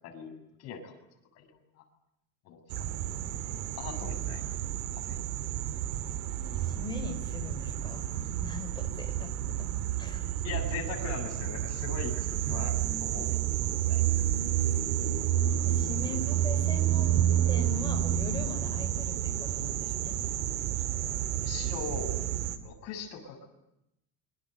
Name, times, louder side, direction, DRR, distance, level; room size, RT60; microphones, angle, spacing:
voice 1, 0.0-0.9 1.4-1.6 2.5-2.9 3.8-4.4 4.9-5.2 10.4-12.8 13.0-13.4 13.9-14.0 21.4-22.1 22.6-23.5, left 5 dB, 45° left, 3 dB, 7.2 m, -40 dB
sound 1, 2.7-22.6, right 11 dB, 75° right, 2.6 m, -30 dB
voice 2, 6.3-8.1 8.4-10.3 14.7-15.3 15.6-20.3, left 4 dB, 15° left, 4 dB, 4.2 m, -42 dB
27.5 x 24.0 x 8.1 m, 0.85 s
cardioid pair, 175°, 35 cm